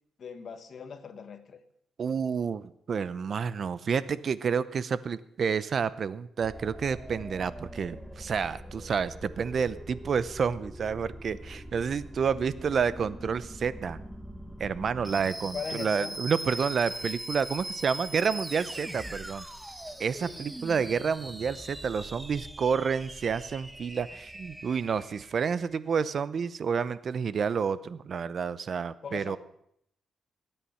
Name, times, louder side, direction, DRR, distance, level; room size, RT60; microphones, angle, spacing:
voice 1, 0.2-1.6 15.5-16.2 29.0-29.4, left 6 dB, 55° left, 9 dB, 1.4 m, -39 dB
voice 2, 2.0-14.0 14.6-19.4 20.0-29.4, right 6 dB, 50° right, 16 dB, 0.7 m, -29 dB
sound 1, 6.4-25.8, right 1 dB, 10° right, 1.0 m, -41 dB
19.5 x 9.0 x 5.6 m, 0.73 s
cardioid pair, 100°, 0 cm